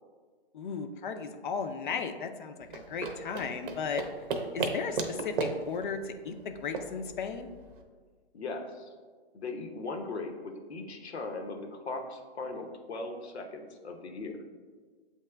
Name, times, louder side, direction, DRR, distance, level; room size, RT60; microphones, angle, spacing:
voice 1, 0.5-4.0 4.4-7.5, left 6 dB, 50° left, 7 dB, 0.5 m, -36 dB
sound 1, 2.6-7.8, right 4 dB, 55° right, 0.7 m, -36 dB
voice 2, 8.3-8.9 9.3-10.4 10.7-14.4, left 3 dB, 85° left, 4 dB, 0.9 m, -38 dB
8.3 x 2.9 x 2.2 m, 1.5 s
hypercardioid pair, 140°, 32 cm